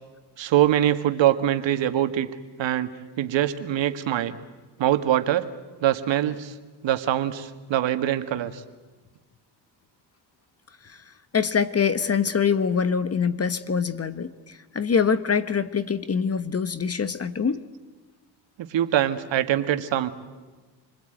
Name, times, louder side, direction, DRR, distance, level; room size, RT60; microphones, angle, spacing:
voice 1, 0.4-2.3 2.6-2.9 3.2-4.4 4.8-5.5 5.8-6.5 6.8-8.6 18.7-20.1, right 12 dB, 65° right, 10 dB, 1.8 m, -23 dB
voice 2, 11.3-17.7, left 6 dB, 30° left, 13 dB, 1.3 m, -24 dB
28.0 x 20.5 x 9.2 m, 1.3 s
cardioid pair, 85°, 48 cm